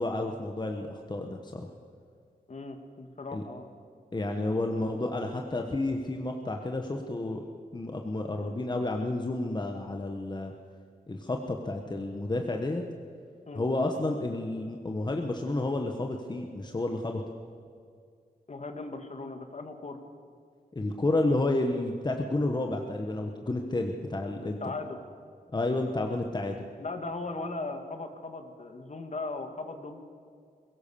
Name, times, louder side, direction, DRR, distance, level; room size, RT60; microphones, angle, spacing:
voice 1, 0.0-1.6 3.3-3.4 4.1-7.4 7.7-10.5 11.1-12.8 13.5-17.2 20.7-24.6 25.5-26.6, left 2 dB, 25° left, 3 dB, 1.3 m, -30 dB
voice 2, 2.5-3.7 13.5-13.6 18.5-20.0 24.4-25.0 26.8-30.0, left 3 dB, 45° left, 6 dB, 2.0 m, -38 dB
22.0 x 17.5 x 7.0 m, 2.2 s
wide cardioid pair, 135°, 16 cm